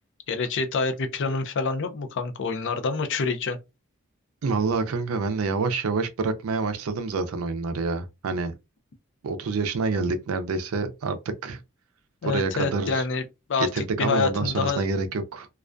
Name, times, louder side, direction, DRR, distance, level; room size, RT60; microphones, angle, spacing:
voice 1, 0.3-3.6 12.2-13.2 13.5-13.7 14.0-14.8, left 4 dB, 60° left, 0.5 m, -26 dB
voice 2, 4.4-8.5 9.2-11.6 12.2-13.0 13.6-15.5, right 4 dB, 75° right, 0.4 m, -27 dB
2.3 x 2.2 x 2.4 m
head